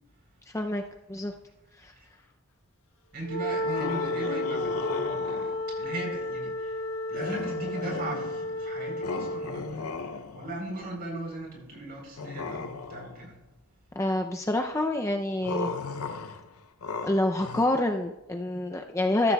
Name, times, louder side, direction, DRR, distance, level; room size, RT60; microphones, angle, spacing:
voice 1, 3.1-13.4, right 2 dB, 45° right, 0 dB, 3.8 m, -39 dB
Wind instrument woodwind instrument, 3.2-9.5, left 1 dB, 60° left, 1.4 m, -32 dB
sound 1, 3.6-5.7 7.1-8.6 9.0-10.7 12.2-13.3 15.4-17.7, left 4 dB, 80° left, 0.6 m, -36 dB
voice 2, 14.0-15.7 17.0-19.3, left 1 dB, 15° left, 4 dB, 0.4 m, -27 dB
14.0 x 12.5 x 2.3 m, 0.92 s
head